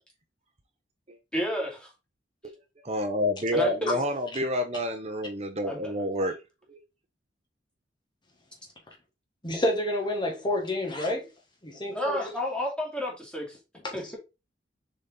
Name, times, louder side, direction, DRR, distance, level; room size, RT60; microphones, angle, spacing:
voice 1, 1.3-1.9 3.5-4.0 5.6-6.0 11.9-13.6 13.9-14.2, left 1 dB, 5° left, 2.5 m, -31 dB
voice 2, 2.8-6.4 6.7-6.8, equal, 35° right, 0.9 m, -28 dB
voice 3, 9.4-11.3 11.6-12.2 13.8-14.0, left 1 dB, 25° left, 1.6 m, -29 dB
6.9 x 4.2 x 3.9 m
head